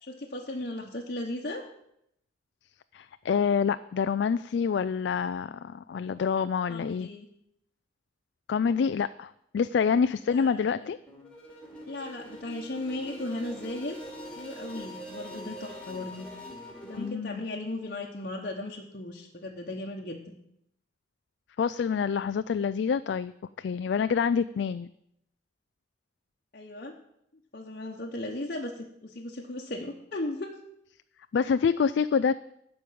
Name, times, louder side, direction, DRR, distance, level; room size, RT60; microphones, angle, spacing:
voice 1, 0.0-1.6 6.7-7.3 10.3-10.9 11.9-14.0 14.3-16.3 16.8-20.3 26.5-26.9 27.5-30.6, left 1 dB, 50° left, -2 dB, 1.1 m, -36 dB
voice 2, 2.9-7.1 8.5-11.0 17.0-17.4 21.6-23.3 23.6-24.9 31.3-32.4, left 6 dB, 65° left, 12 dB, 0.3 m, -27 dB
sound 1, 11.1-17.1, equal, 5° left, 2.5 m, -43 dB
12.0 x 5.3 x 8.6 m, 0.77 s
head